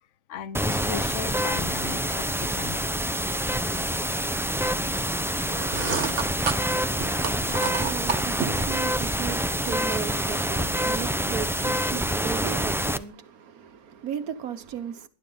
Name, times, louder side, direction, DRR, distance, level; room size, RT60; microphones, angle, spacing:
voice 1, 0.3-2.9 6.1-6.3 6.8-7.0, left 7 dB, 60° left, 1.2 m, -38 dB
sound 1, 0.5-13.0, equal, 5° right, 0.4 m, -27 dB
sound 2, 5.4-8.7, right 5 dB, 55° right, 1.6 m, -31 dB
voice 2, 6.7-15.1, right 8 dB, 90° right, 1.6 m, -36 dB
19.5 x 11.5 x 4.0 m
omnidirectional pair, 1.5 m